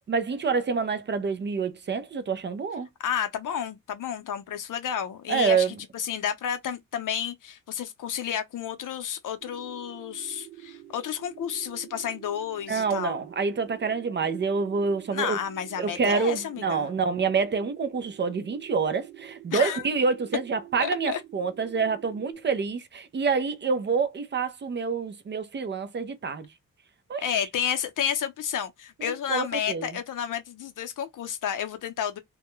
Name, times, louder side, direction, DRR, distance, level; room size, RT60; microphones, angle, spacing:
voice 1, 0.1-2.9 5.3-5.7 12.7-15.4 15.8-26.5 27.1-27.4 29.0-29.9, right 5 dB, 35° right, 0.4 m, -27 dB
voice 2, 3.0-13.2 15.1-16.9 19.5-19.8 20.8-21.2 27.2-32.2, left 9 dB, 65° left, 0.6 m, -31 dB
sound 1, 9.4-22.3, right 14 dB, 65° right, 0.9 m, -48 dB
2.2 x 2.1 x 2.9 m
wide cardioid pair, 150°, 34 cm